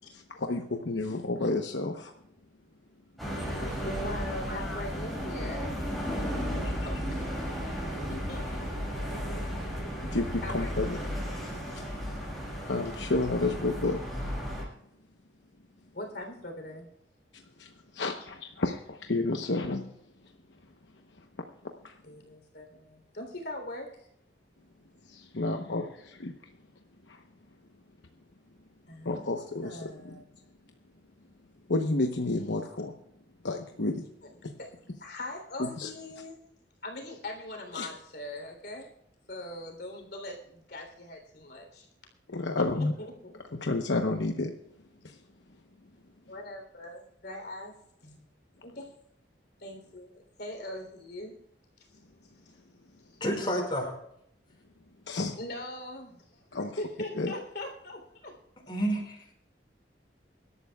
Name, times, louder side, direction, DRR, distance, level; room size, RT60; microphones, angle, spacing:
voice 1, 0.1-2.1 4.5-4.8 10.1-11.0 11.7-11.8 12.7-14.0 17.3-19.9 21.8-21.9 25.1-26.3 27.1-27.2 29.0-30.2 31.7-32.9 33.4-34.1 34.4-34.5 35.6-35.9 37.7-37.9 42.3-42.9 43.6-44.5 45.0-45.2 55.1-55.4 56.5-56.8 57.2-57.3, left 2 dB, 75° left, 4 dB, 1.0 m, -31 dB
voice 2, 3.2-5.7 6.4-7.3 7.8-8.7 10.4-11.2 15.9-16.9 22.0-24.1 28.9-30.2 34.6-34.7 35.0-36.4 36.8-38.9 39.3-41.9 42.6-43.5 46.3-47.7 48.0-48.2 48.6-48.9 49.6-51.4 51.8-52.5 53.0-53.2 55.4-58.4, left 1 dB, 60° left, 2 dB, 3.5 m, -41 dB
sound 1, 3.2-14.6, equal, ahead, 5.9 m, -34 dB
voice 3, 53.2-53.9 58.7-59.3, equal, 25° left, -1 dB, 5.4 m, -30 dB
24.5 x 12.5 x 2.4 m, 0.75 s
head